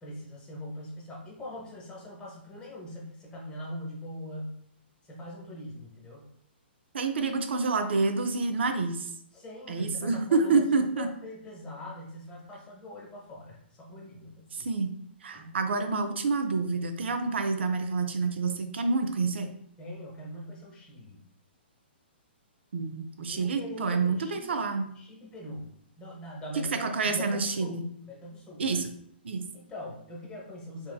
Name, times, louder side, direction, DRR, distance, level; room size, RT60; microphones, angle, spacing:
voice 1, 0.0-4.6 5.0-6.3 9.3-14.7 15.3-15.6 19.8-21.2 23.3-24.6 24.9-28.8 29.5-30.9, left 1 dB, 15° left, -3 dB, 0.9 m, -42 dB
voice 2, 6.9-9.1 9.7-11.1 14.6-14.9 15.2-19.5 22.7-24.9 26.8-27.9 28.6-28.9 29.2-29.5, right 4 dB, 80° right, 7 dB, 0.4 m, -28 dB
3.5 x 2.7 x 2.2 m, 0.67 s
hypercardioid pair, 145°, 6 cm